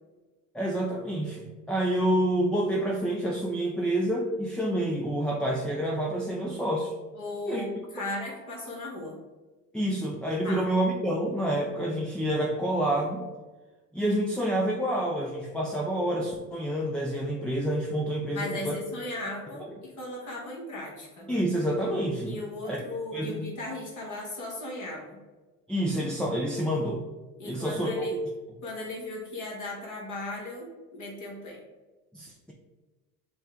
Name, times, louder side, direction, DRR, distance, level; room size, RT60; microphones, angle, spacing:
voice 1, 0.5-6.9 7.5-7.7 9.7-13.2 13.9-18.8 21.3-22.3 22.6-22.8 23.1-23.5 25.7-27.0 27.4-28.1 32.1-32.5, right 1 dB, ahead, 0 dB, 0.4 m, -28 dB
voice 2, 7.1-9.2 10.4-10.6 18.3-21.3 22.2-25.2 27.4-28.2 28.6-31.6, left 1 dB, 40° left, -2 dB, 1.4 m, -37 dB
6.2 x 2.2 x 3.7 m, 1.2 s
hypercardioid pair, 75°, 45 cm